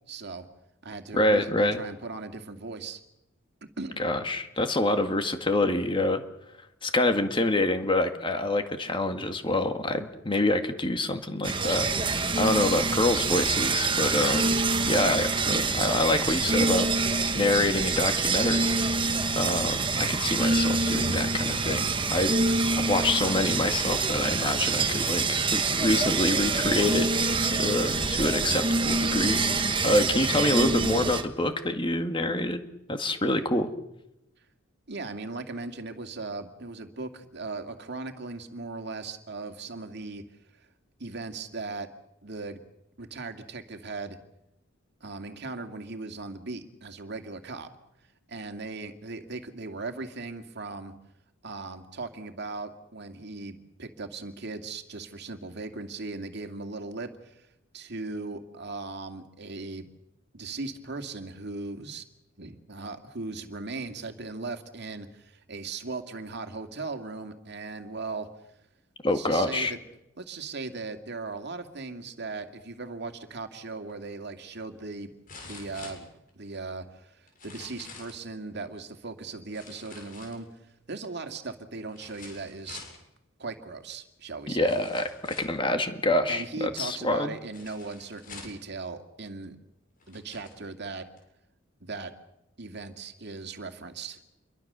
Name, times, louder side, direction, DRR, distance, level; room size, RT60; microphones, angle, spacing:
voice 1, 0.1-0.5 0.8-3.0 3.6-4.0 34.9-40.2 40.5-40.7 41.0-41.9 42.2-42.6 43.0-44.2 45.0-47.7 48.3-50.9 51.4-57.5 57.7-59.9 60.3-62.0 62.4-68.3 69.1-69.8 70.2-75.1 75.4-76.1 76.3-80.5 80.9-82.8 83.4-84.8 86.3-89.6 90.1-91.1 91.8-92.1 92.6-94.2, right 3 dB, 55° right, 7 dB, 2.3 m, -38 dB
voice 2, 1.1-1.8 4.0-6.2 6.8-16.9 17.4-18.7 19.4-32.6 32.9-33.7 69.0-69.7 84.5-85.1 85.4-87.3, left 2 dB, 25° left, 7 dB, 1.9 m, -26 dB
sound 1, 11.4-31.2, right 3 dB, 25° right, 1.5 m, -26 dB
sound 2, 73.9-74.0 75.3-76.6 77.3-78.2 79.5-80.7 81.9-83.0 84.0-84.1 84.6-85.6 87.5-88.7 89.5-89.6 90.0-90.6 91.2-91.3, left 4 dB, 45° left, 7.4 m, -46 dB
28.0 x 23.5 x 6.8 m, 0.87 s
head